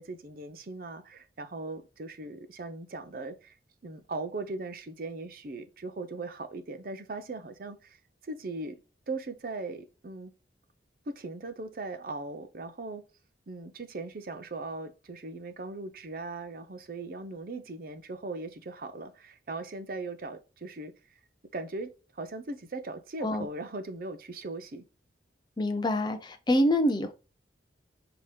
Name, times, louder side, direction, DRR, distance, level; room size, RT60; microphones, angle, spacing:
voice 1, 0.0-3.6 3.8-8.0 8.2-8.8 9.1-10.3 11.1-13.1 13.5-21.2 21.5-24.8, right 3 dB, 50° right, 0.5 m, -39 dB
voice 2, 25.6-27.1, left 1 dB, 25° left, 0.4 m, -26 dB
5.3 x 2.9 x 3.2 m
head